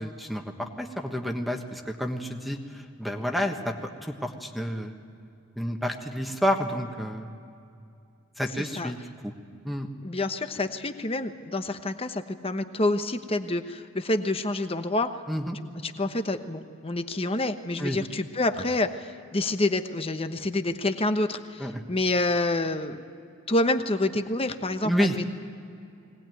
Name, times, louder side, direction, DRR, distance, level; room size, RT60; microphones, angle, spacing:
voice 1, 0.0-5.0 5.6-7.3 8.4-9.3 9.6-9.9 15.3-15.6 17.8-18.0 21.6-21.8 24.8-25.1, equal, ahead, 3 dB, 1.3 m, -30 dB
voice 2, 10.0-15.1 15.8-18.9 19.3-23.0 23.5-25.2, left 2 dB, 25° left, 8 dB, 1.0 m, -27 dB
21.5 x 18.5 x 9.2 m, 2.5 s
head